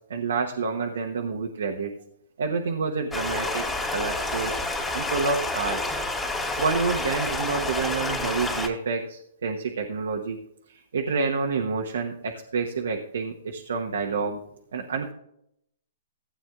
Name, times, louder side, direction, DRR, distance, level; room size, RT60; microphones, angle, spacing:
voice 1, 0.1-1.9 2.4-3.6 3.9-4.5 4.9-5.8 6.6-10.4 10.9-14.4 14.7-15.1, right 4 dB, 80° right, 1 dB, 1.1 m, -28 dB
Stream, 3.1-8.7, left 2 dB, 5° left, 2.3 m, -29 dB
16.0 x 8.7 x 2.4 m, 0.74 s
hypercardioid pair, 135°, 0 cm